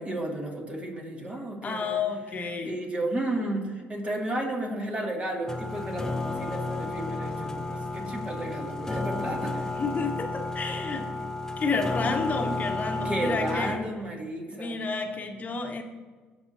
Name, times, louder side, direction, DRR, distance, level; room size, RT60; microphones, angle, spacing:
voice 1, 0.0-2.0 2.4-9.7 13.0-14.7, right 1 dB, 30° right, -1 dB, 2.4 m, -33 dB
voice 2, 1.6-2.7 8.0-8.3 9.4-9.5 9.8-11.1 11.6-13.8 14.5-15.8, left 4 dB, 35° left, 4 dB, 1.2 m, -30 dB
sound 1, 5.5-13.8, left 2 dB, 10° left, 0.8 m, -32 dB
17.0 x 6.0 x 2.8 m, 1.4 s
supercardioid pair, 75°, 5 cm